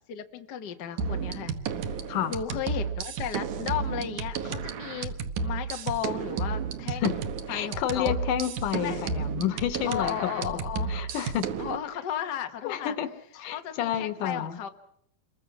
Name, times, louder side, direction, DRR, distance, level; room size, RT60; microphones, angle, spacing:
voice 1, 0.1-1.5 2.3-7.2 7.5-8.2 8.7-9.1 9.9-11.0 11.6-12.9 13.5-14.7, left 9 dB, 90° left, 6 dB, 0.9 m, -34 dB
sound 1, 1.0-11.8, right 5 dB, 65° right, 2.4 m, -32 dB
voice 2, 7.5-10.6 10.9-11.5 12.6-13.1 13.4-14.6, left 10 dB, 70° left, 11 dB, 2.4 m, -30 dB
28.0 x 22.5 x 6.1 m, 0.75 s
omnidirectional pair, 4.2 m